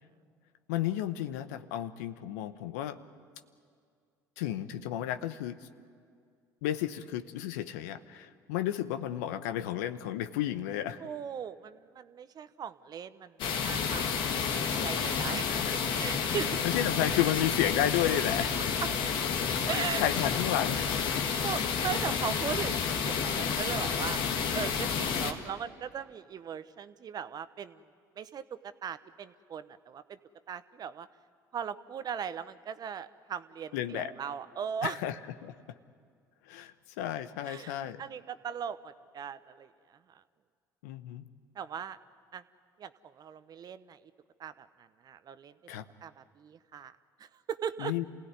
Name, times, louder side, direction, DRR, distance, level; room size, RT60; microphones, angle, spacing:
voice 1, 0.7-3.0 4.4-5.6 6.6-11.0 15.5-16.4 16.6-18.7 19.7-20.9 33.7-34.1 34.8-35.1 35.4-35.5 36.5-38.0 40.8-41.2 45.7-45.8 47.8-48.0, left 12 dB, 80° left, 11 dB, 0.9 m, -32 dB
voice 2, 11.0-15.4 15.9-16.5 18.8-18.9 19.7-20.1 21.1-24.2 24.5-27.8 28.1-30.2 30.5-31.1 31.5-35.0 37.4-40.2 41.5-42.0 42.3-42.4 42.8-44.0 44.4-45.5 46.0-47.9, right 8 dB, 50° right, 13 dB, 1.0 m, -39 dB
sound 1, 13.4-25.3, left 6 dB, 65° left, 1.9 m, -30 dB
27.5 x 17.0 x 9.6 m, 2.2 s
hypercardioid pair, 65°, 9 cm